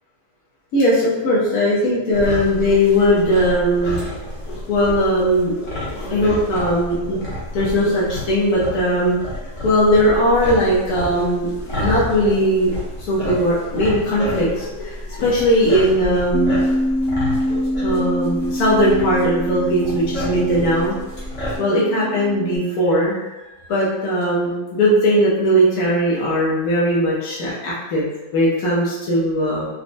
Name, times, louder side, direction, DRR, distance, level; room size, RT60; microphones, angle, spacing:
voice 1, 0.7-4.0 4.7-5.5 6.1-7.2 7.5-9.2 9.6-16.5 17.8-20.9 21.6-28.1 28.3-29.7, equal, 75° left, -6 dB, 1.2 m, -19 dB
sound 1, 2.1-21.6, left 1 dB, 55° left, 1.2 m, -30 dB
Bass guitar, 16.3-22.6, equal, 25° left, 1.0 m, -25 dB
4.0 x 2.1 x 2.5 m, 1.1 s
omnidirectional pair, 1.6 m